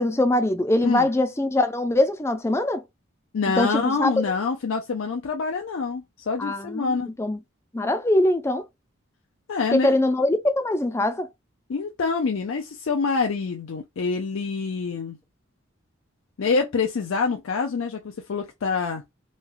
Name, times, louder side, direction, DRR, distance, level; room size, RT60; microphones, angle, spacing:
voice 1, 0.0-2.8 3.6-4.1 6.4-7.4 7.7-8.7 9.7-11.3, left 1 dB, 15° left, 0.4 m, -22 dB
voice 2, 3.3-7.1 9.5-9.9 11.7-15.2 16.4-19.0, left 4 dB, 80° left, 0.5 m, -26 dB
3.1 x 2.3 x 2.3 m
head